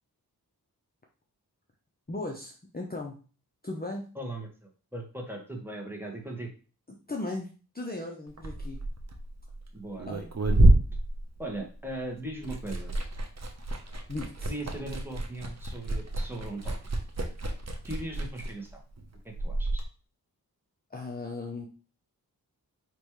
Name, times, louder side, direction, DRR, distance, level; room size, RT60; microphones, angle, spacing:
voice 1, 2.1-3.2 3.6-4.1 7.1-8.8 10.1-10.3 14.1-14.5 20.9-21.7, left 2 dB, 25° left, 0 dB, 0.8 m, -37 dB
voice 2, 4.1-6.5 9.7-10.1 11.4-12.9 14.4-16.7 17.8-18.8 19.2-19.8, right 1 dB, 5° right, 0 dB, 1.6 m, -38 dB
Liquid, 8.3-12.0 12.3-19.8, right 1 dB, 45° right, 1.0 m, -28 dB
5.3 x 3.2 x 3.2 m, 0.37 s
cardioid pair, 50°, 38 cm